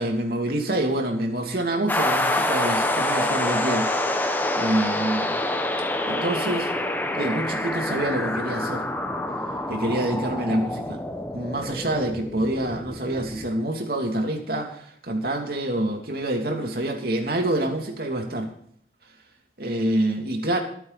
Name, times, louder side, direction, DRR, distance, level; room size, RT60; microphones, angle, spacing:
voice 1, 0.0-3.9 4.6-5.4 6.1-6.7 7.1-8.8 9.7-11.0 11.3-18.5 19.6-20.6, right 1 dB, 55° right, 2 dB, 2.8 m, -26 dB
sound 1, 1.9-13.5, left 1 dB, 10° left, 1.1 m, -27 dB
23.5 x 9.5 x 4.2 m, 0.63 s
head